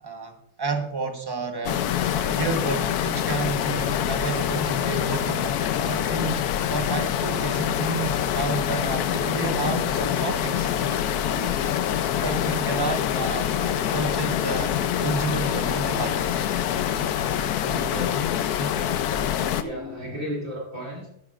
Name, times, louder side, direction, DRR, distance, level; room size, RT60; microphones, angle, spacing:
voice 1, 0.0-1.8 2.1-10.7 12.2-16.5 18.6-18.8, right 3 dB, 20° right, 5 dB, 0.9 m, -31 dB
sound 1, 1.6-19.6, left 10 dB, 80° left, 1.1 m, -25 dB
sound 2, 8.3-20.2, left 4 dB, 45° left, 1.3 m, -41 dB
voice 2, 17.4-18.2 19.6-21.1, equal, 55° right, -4 dB, 3.1 m, -35 dB
13.0 x 11.5 x 2.4 m, 0.78 s
omnidirectional pair, 1.6 m